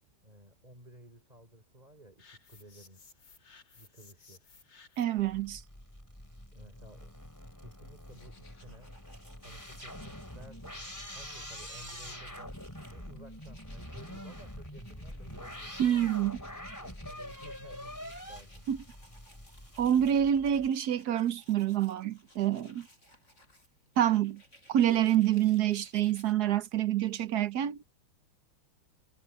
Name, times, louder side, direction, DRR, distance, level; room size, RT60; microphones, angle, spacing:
voice 1, 0.2-3.0 3.8-4.5 6.5-7.2 7.6-8.9 9.4-10.8 11.1-12.6 12.9-15.8 16.8-18.7 18.9-19.2, right 1 dB, 20° right, 4.6 m, -54 dB
sound 1, 2.2-5.3, left 4 dB, 55° left, 3.5 m, -58 dB
voice 2, 5.0-5.6 15.8-16.4 18.7-18.8 19.8-22.9 24.0-24.4 24.7-27.8, right 11 dB, 60° right, 1.2 m, -27 dB
sound 2, 5.2-20.7, equal, 10° left, 4.6 m, -45 dB
sound 3, 7.9-26.3, equal, 35° left, 4.7 m, -60 dB
omnidirectional pair, 2.3 m